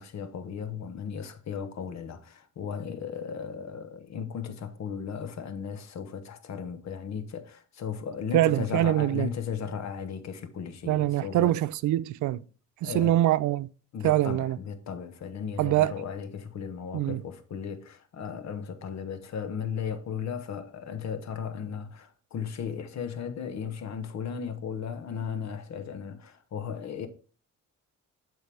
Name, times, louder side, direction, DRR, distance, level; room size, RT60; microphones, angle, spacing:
voice 1, 0.0-11.6 12.8-13.2 13.9-27.1, left 7 dB, 65° left, 1.3 m, -36 dB
voice 2, 8.3-9.3 10.9-12.4 12.8-13.7 14.0-14.6 15.6-15.9 16.9-17.2, right 14 dB, 75° right, 0.5 m, -24 dB
7.9 x 6.2 x 3.5 m
cardioid pair, 90°, 30 cm